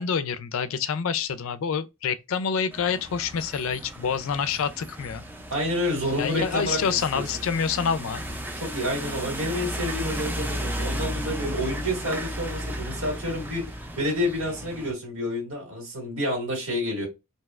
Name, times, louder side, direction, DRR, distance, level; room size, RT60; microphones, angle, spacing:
voice 1, 0.0-5.2 6.2-8.3, left 6 dB, 70° left, 0.4 m, -27 dB
sound 1, 2.7-14.9, equal, 10° right, 0.3 m, -34 dB
voice 2, 5.5-7.2 8.6-13.6 14.0-17.1, left 1 dB, 75° right, 1.7 m, -29 dB
3.0 x 2.7 x 2.3 m
head